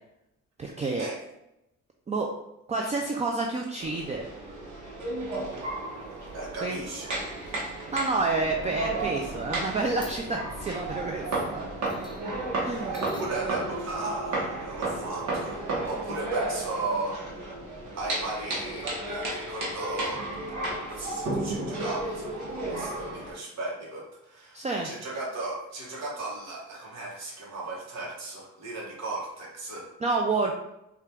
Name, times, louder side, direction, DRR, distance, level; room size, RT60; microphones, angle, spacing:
voice 1, 0.6-1.1 2.1-2.3 2.7-4.3 6.6-6.8 7.9-11.3 11.5-11.7 12.6-12.9 24.5-24.9 30.0-30.6, right 3 dB, 25° right, 1 dB, 0.4 m, -29 dB
sound 1, 3.8-23.3, right 2 dB, 75° right, 1.1 m, -33 dB
sound 2, 6.1-6.3 6.6-6.9 7.1-7.7 8.0-8.2 9.7-9.8 10.0-11.5 11.9-16.6, left 2 dB, 15° left, 0.7 m, -46 dB
voice 2, 6.3-7.2 12.9-17.2 17.9-29.9, right 2 dB, 60° right, -4 dB, 1.3 m, -36 dB
4.2 x 2.5 x 3.4 m, 0.87 s
cardioid pair, 90°, 30 cm